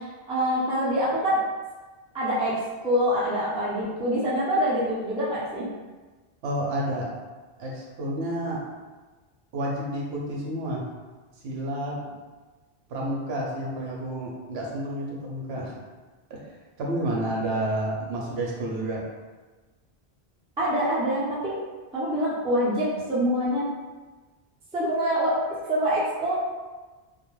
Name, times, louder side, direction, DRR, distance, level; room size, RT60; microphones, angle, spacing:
voice 1, 0.0-1.4 2.1-2.6 2.8-5.7 20.6-21.5 21.9-23.7 24.7-25.4 25.7-26.4, equal, 10° right, -8 dB, 0.4 m, -25 dB
voice 2, 6.4-7.1 7.6-8.6 9.5-10.8 11.4-12.2 12.9-15.8 16.3-16.4 16.8-19.1, right 1 dB, 75° right, -3 dB, 0.8 m, -30 dB
2.3 x 2.1 x 3.0 m, 1.3 s
omnidirectional pair, 1.1 m